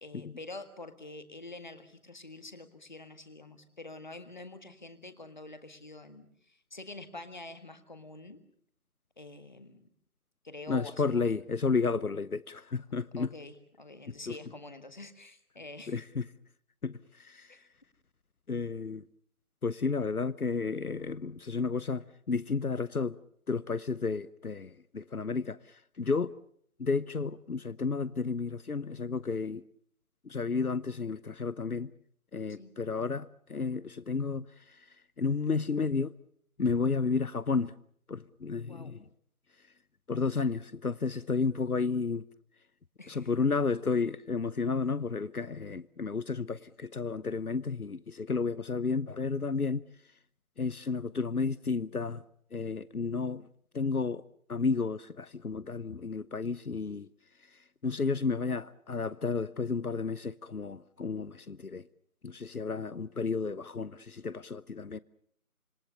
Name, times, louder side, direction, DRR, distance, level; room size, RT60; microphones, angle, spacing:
voice 1, 0.0-8.4 9.2-9.9 10.4-11.4 13.2-16.0 17.5-17.6 32.6-32.8 38.7-39.0 43.0-43.3, left 2 dB, 30° left, 1.8 m, -47 dB
voice 2, 10.7-13.3 14.1-14.3 15.9-16.2 16.8-17.6 18.5-19.0 19.6-23.2 23.5-26.3 26.8-29.6 30.2-31.9 32.3-34.9 35.2-36.1 36.6-37.7 38.1-39.0 40.1-42.3 43.1-49.8 50.6-52.2 52.5-53.5 53.7-54.2 54.5-57.1 57.5-61.9 62.2-65.0, left 4 dB, 80° left, 0.9 m, -32 dB
27.0 x 23.5 x 6.9 m
figure-of-eight pair, 165°, 43 cm